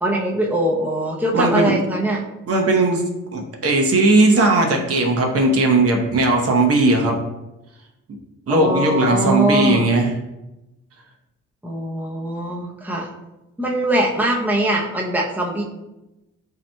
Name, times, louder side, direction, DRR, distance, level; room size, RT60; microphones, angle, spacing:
voice 1, 0.0-2.2 8.5-9.9 11.6-13.1 13.6-15.6, right 1 dB, 5° right, -2 dB, 0.8 m, -22 dB
voice 2, 1.3-1.8 2.5-3.0 3.3-7.2 8.5-10.1, right 2 dB, 50° right, 1 dB, 1.0 m, -17 dB
8.1 x 2.9 x 2.3 m, 0.97 s
cardioid pair, 90°, 30 cm